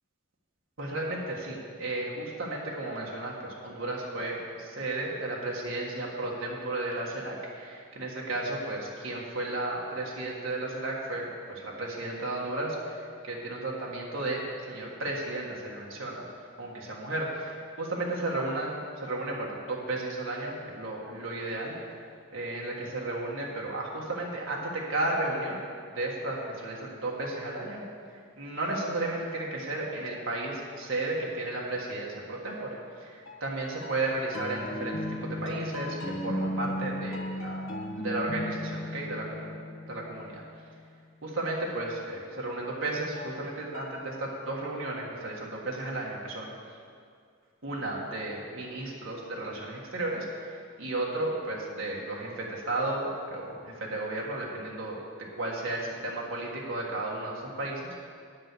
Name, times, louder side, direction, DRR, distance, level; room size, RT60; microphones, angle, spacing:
voice 1, 0.8-16.2 16.6-21.7 22.3-25.6 25.9-27.8 28.4-34.9 35.2-37.6 37.9-39.5 39.9-40.4 41.2-46.5 47.6-55.0 55.4-58.1, right 2 dB, 65° right, -3 dB, 1.6 m, -34 dB
sound 1, 33.3-40.9 43.1-44.0, left 1 dB, 65° left, 1.4 m, -36 dB
9.3 x 7.6 x 6.8 m, 2.2 s
head